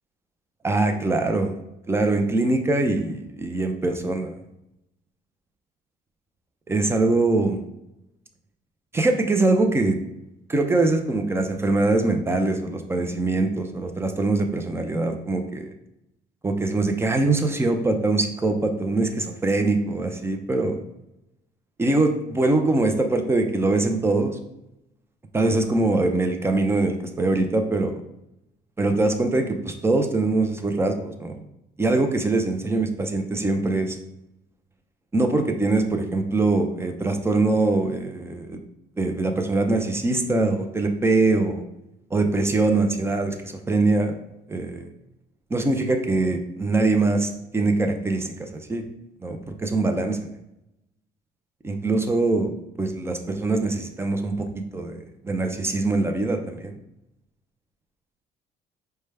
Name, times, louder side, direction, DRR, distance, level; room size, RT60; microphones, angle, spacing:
voice 1, 0.6-1.5 1.9-4.4 6.7-7.6 8.9-10.0 10.5-15.7 16.4-20.8 21.8-24.4 25.3-28.0 28.8-31.4 31.8-34.0 35.1-38.6 39.0-41.7 42.1-44.2 44.5-44.9 45.5-48.8 49.2-50.3 51.6-52.5 52.8-54.5 54.7-56.8, right 2 dB, 15° right, 5 dB, 0.5 m, -23 dB
4.9 x 2.2 x 3.2 m, 0.86 s
cardioid pair, 110°, 17 cm